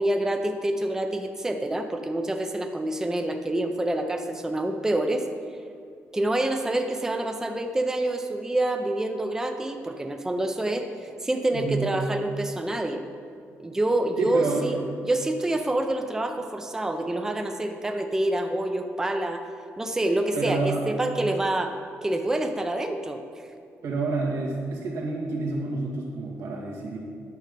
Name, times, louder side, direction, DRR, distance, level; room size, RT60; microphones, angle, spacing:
voice 1, 0.0-5.2 6.1-13.0 13.6-14.8 15.0-19.4 19.8-23.2, right 1 dB, 10° right, 5 dB, 0.5 m, -27 dB
voice 2, 11.5-11.9 14.2-15.0 20.3-20.8 23.8-27.0, right 3 dB, 90° right, -2 dB, 1.9 m, -28 dB
9.2 x 6.3 x 5.2 m, 2.3 s
cardioid pair, 130°, 5 cm